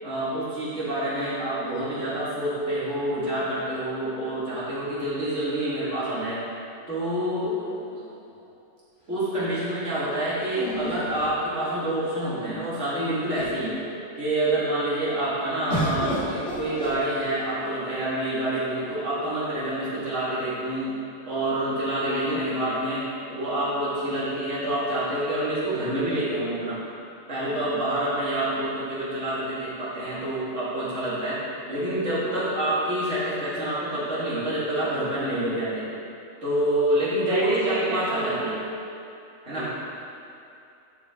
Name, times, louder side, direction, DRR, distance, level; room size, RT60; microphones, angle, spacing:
voice 1, 0.0-6.4 6.9-7.6 9.1-13.8 14.2-20.9 21.3-26.8 27.3-31.4 31.7-35.9 36.4-38.6 39.4-39.7, right 1 dB, 75° right, -9 dB, 2.4 m, -27 dB
sound 1, 7.4-8.5 10.5-12.0 12.8-12.9 13.1-13.7 15.7-17.6 18.5-19.2, equal, 80° left, 2.2 m, -33 dB
voice 2, 22.0-22.4 37.3-38.5 39.5-39.7, right 2 dB, 50° right, -8 dB, 1.4 m, -29 dB
11.0 x 4.8 x 3.7 m, 2.7 s
omnidirectional pair, 1.2 m